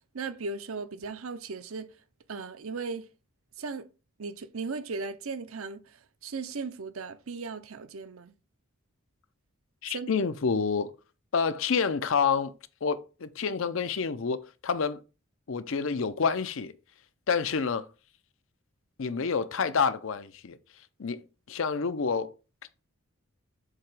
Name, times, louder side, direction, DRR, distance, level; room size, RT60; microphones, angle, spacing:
voice 1, 0.1-1.9 2.3-3.1 3.6-3.9 4.2-8.3 9.9-10.2, right 4 dB, 75° right, 0.7 m, -37 dB
voice 2, 9.8-10.9 11.3-12.5 12.8-15.0 15.5-16.7 17.3-17.9 19.0-20.6 21.0-22.3, left 5 dB, 65° left, 0.6 m, -28 dB
7.5 x 2.9 x 4.8 m
head